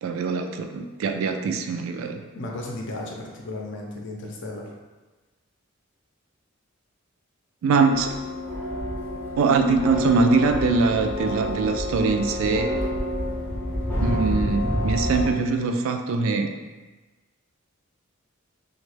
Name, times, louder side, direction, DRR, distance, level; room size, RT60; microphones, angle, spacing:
voice 1, 0.0-2.2 7.6-8.1 9.4-12.7 14.0-16.5, right 4 dB, 70° right, 6 dB, 0.3 m, -22 dB
voice 2, 2.3-4.7, left 2 dB, 60° left, 0 dB, 0.5 m, -34 dB
sound 1, 7.9-15.3, equal, 10° left, 0.5 m, -28 dB
2.9 x 2.2 x 3.1 m, 1.2 s
head